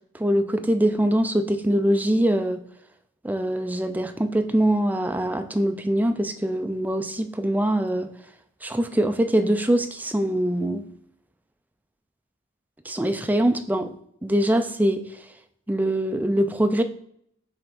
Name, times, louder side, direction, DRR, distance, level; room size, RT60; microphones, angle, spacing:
voice 1, 0.1-2.6 3.2-8.1 8.6-10.8 12.9-13.9 14.2-15.1 15.7-16.8, right 1 dB, 10° right, 7 dB, 0.4 m, -23 dB
5.6 x 3.5 x 5.3 m, 0.68 s
head